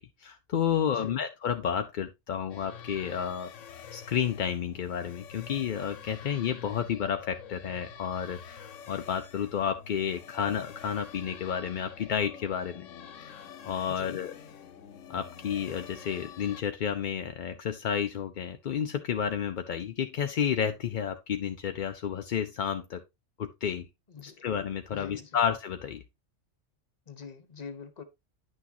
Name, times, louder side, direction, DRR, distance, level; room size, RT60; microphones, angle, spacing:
voice 1, 0.0-3.5 3.9-12.9 13.6-14.4 15.1-23.0 23.4-23.9 24.4-26.0, left 8 dB, 55° left, 0.5 m, -31 dB
voice 2, 0.8-1.2 13.9-14.2 24.1-24.4 24.9-25.3 27.1-28.0, left 6 dB, 40° left, 0.9 m, -44 dB
sound 1, 2.5-16.6, left 7 dB, 85° left, 1.1 m, -47 dB
9.9 x 6.1 x 2.7 m
omnidirectional pair, 1.3 m